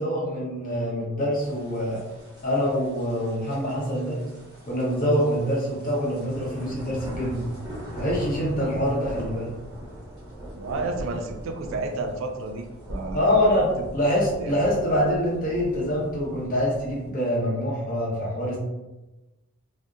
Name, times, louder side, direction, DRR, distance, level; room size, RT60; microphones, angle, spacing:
voice 1, 0.0-2.0 2.4-4.2 4.6-7.4 7.9-9.5 13.1-18.6, equal, 40° left, -5 dB, 0.8 m, -25 dB
sound 1, 1.4-17.1, equal, 20° right, 0.8 m, -40 dB
voice 2, 10.5-13.5 14.4-14.6, right 3 dB, 65° right, 5 dB, 0.3 m, -31 dB
2.7 x 2.0 x 2.3 m, 1.1 s
head